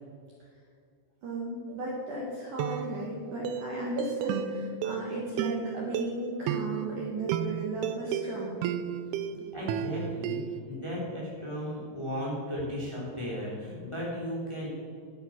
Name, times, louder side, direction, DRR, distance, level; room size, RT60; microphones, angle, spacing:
voice 1, 1.2-8.6, right 1 dB, 60° right, -4 dB, 2.3 m, -35 dB
sound 1, 1.7-2.0 2.6-10.6, right 8 dB, 90° right, 2.2 m, -34 dB
voice 2, 9.3-14.7, equal, 10° left, -6 dB, 2.6 m, -35 dB
12.5 x 7.9 x 5.9 m, 2.2 s
omnidirectional pair, 5.1 m